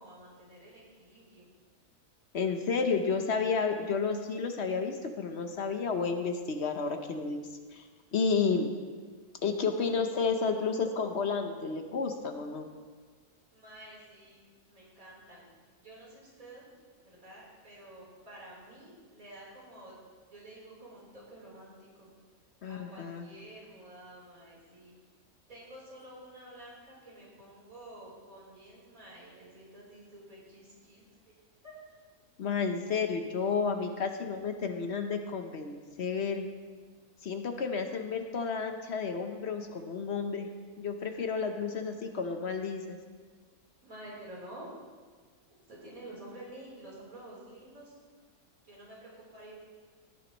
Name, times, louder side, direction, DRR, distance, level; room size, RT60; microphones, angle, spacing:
voice 1, 0.0-1.5 13.5-14.4 14.7-15.5 15.8-16.7 17.0-19.9 20.3-22.1 22.7-24.9 25.5-31.3 31.6-31.8 33.8-34.0 43.8-44.7 45.7-47.9 48.6-49.5, right 1 dB, 60° right, -6 dB, 4.1 m, -50 dB
voice 2, 2.3-7.4 7.7-7.8 8.1-8.7 9.4-12.7 22.6-23.3 32.4-36.4 37.2-40.5 40.8-43.0, left 5 dB, 50° left, 6 dB, 0.9 m, -31 dB
17.0 x 10.0 x 3.0 m, 1.5 s
omnidirectional pair, 1.7 m